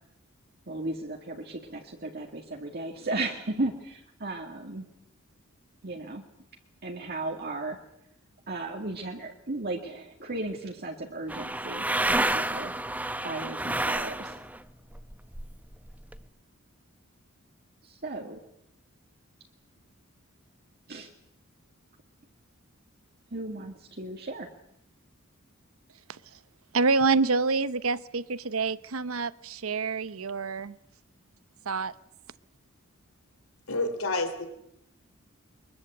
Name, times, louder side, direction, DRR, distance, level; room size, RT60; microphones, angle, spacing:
voice 1, 0.7-4.9 5.8-6.2 6.8-7.8 8.5-12.7 13.2-14.4 17.8-18.5 20.9-21.1 23.3-24.5, right 2 dB, 50° right, 2 dB, 2.1 m, -35 dB
sound 1, 11.3-14.6 14.9-16.2, right 1 dB, 10° right, 0.8 m, -29 dB
voice 2, 26.7-30.8 31.7-31.9, right 4 dB, 80° right, 17 dB, 0.9 m, -27 dB
voice 3, 33.7-34.5, left 2 dB, 80° left, 9 dB, 3.6 m, -29 dB
22.5 x 21.5 x 8.0 m, 0.77 s
head